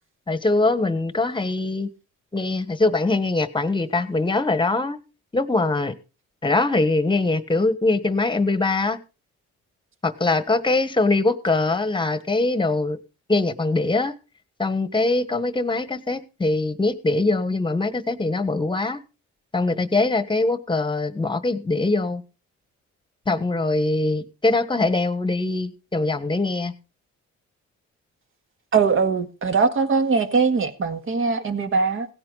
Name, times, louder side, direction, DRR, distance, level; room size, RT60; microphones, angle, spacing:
voice 1, 0.3-1.9 2.3-5.0 5.3-5.9 6.4-9.0 10.0-13.0 13.3-14.1 14.6-19.0 19.5-22.2 23.3-26.7, left 2 dB, 15° left, 1.3 m, -22 dB
voice 2, 28.7-32.1, right 5 dB, 45° right, 1.9 m, -21 dB
17.0 x 9.7 x 4.0 m
cardioid pair, 90°, 30 cm